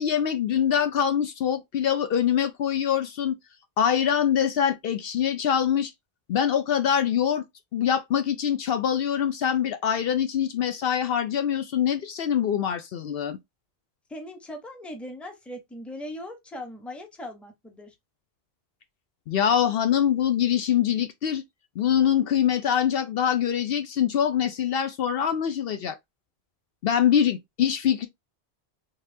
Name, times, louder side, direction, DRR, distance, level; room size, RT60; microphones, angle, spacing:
voice 1, 0.0-3.3 3.8-5.9 6.3-7.4 7.7-13.4 19.3-21.4 21.8-26.0 26.8-28.1, left 9 dB, 65° left, 0.7 m, -24 dB
voice 2, 14.1-17.9, left 1 dB, ahead, 0.7 m, -39 dB
4.1 x 3.3 x 2.6 m
omnidirectional pair, 1.1 m